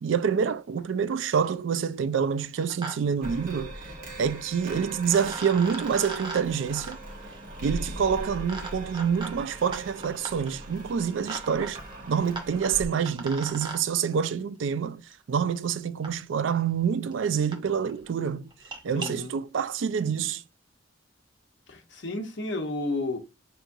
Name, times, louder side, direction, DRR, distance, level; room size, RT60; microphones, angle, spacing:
voice 1, 0.0-3.7 4.2-7.0 7.6-11.8 12.1-18.5 18.8-20.4, right 7 dB, 75° right, 0.4 m, -27 dB
sound 1, 0.8-0.9 1.1-1.6 2.4-2.9 3.2-3.3 4.6-4.7 5.1-13.8 15.1-15.2 16.0-16.1 16.8-16.9 17.1-17.2 17.5-17.6 17.9-18.1 18.5-19.1, right 3 dB, 25° right, 0.8 m, -40 dB
sound 2, 3.2-12.9, right 1 dB, 45° right, 1.2 m, -41 dB
voice 2, 18.9-19.3 21.7-23.2, left 2 dB, 65° left, 0.9 m, -32 dB
5.9 x 3.0 x 2.6 m
head